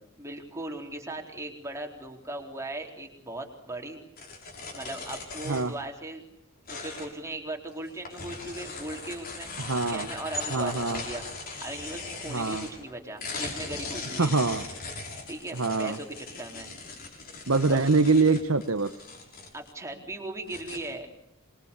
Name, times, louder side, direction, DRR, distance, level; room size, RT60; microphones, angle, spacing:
voice 1, 0.2-4.0 4.7-6.2 6.7-9.5 9.8-11.2 11.6-14.3 15.3-16.7 17.7-17.8 19.5-21.1, right 2 dB, 15° right, 2 dB, 3.9 m, -38 dB
sound 1, 4.2-5.8 6.7-7.3 7.7-12.9 13.2-19.7 20.1-20.2 20.5-20.8, left 3 dB, 45° left, 6.4 m, -39 dB
voice 2, 9.6-10.1 10.5-11.0 12.3-12.6 14.2-14.6 15.6-16.0 17.5-18.9, right 3 dB, 70° right, 9 dB, 1.1 m, -24 dB
26.5 x 23.0 x 8.3 m, 0.75 s
head